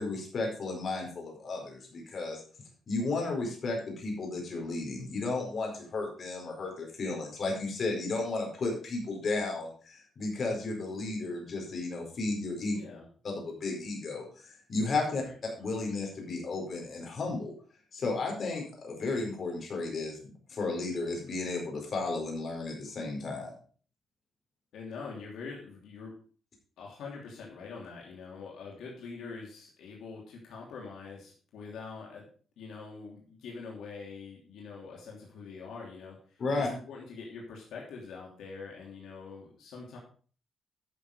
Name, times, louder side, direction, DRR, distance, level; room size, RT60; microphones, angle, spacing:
voice 1, 0.0-2.4 2.9-12.8 13.2-15.2 15.6-17.5 17.9-23.5 36.4-36.7, left 3 dB, 45° left, 1 dB, 4.6 m, -33 dB
voice 2, 12.7-13.1 15.2-15.3 24.7-26.1 26.8-32.3 32.6-40.0, left 4 dB, 85° left, -2 dB, 3.0 m, -44 dB
11.5 x 6.6 x 5.0 m, 0.42 s
cardioid pair, 125°, 0 cm